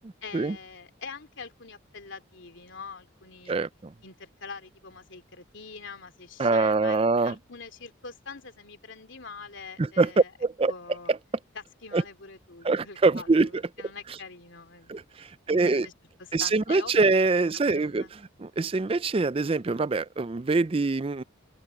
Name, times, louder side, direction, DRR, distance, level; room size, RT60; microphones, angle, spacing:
voice 1, 0.2-3.7 4.0-10.3 10.7-11.1 11.5-15.9 16.2-17.1 17.5-18.1, left 4 dB, 65° left, 3.0 m, -44 dB
voice 2, 3.5-3.9 6.4-7.3 9.8-10.1 10.4-10.7 11.1-11.2 11.9-12.0 12.6-13.6 14.9-15.9 16.3-21.2, right 3 dB, 30° right, 0.4 m, -24 dB
open air
head